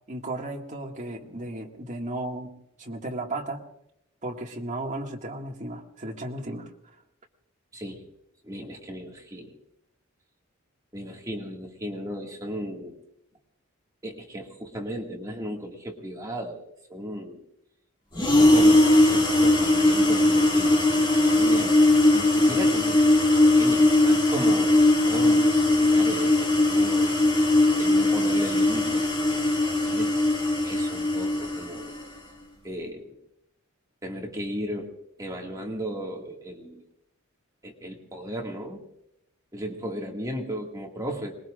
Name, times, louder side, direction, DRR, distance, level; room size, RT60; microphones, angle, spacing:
voice 1, 0.1-2.5 2.8-3.7 4.2-6.7, right 2 dB, 35° right, 0 dB, 2.1 m, -34 dB
voice 2, 8.4-9.6 10.9-13.0 14.0-17.4 18.3-21.8 22.1-23.2 23.5-27.1 27.8-30.1 30.6-31.9 32.6-33.2 34.0-34.9 35.2-36.9 37.6-38.8 39.5-41.4, equal, 15° right, -1 dB, 2.1 m, -35 dB
sound 1, 18.1-32.1, left 2 dB, 25° left, 2.4 m, -20 dB
26.0 x 21.0 x 2.5 m, 0.78 s
head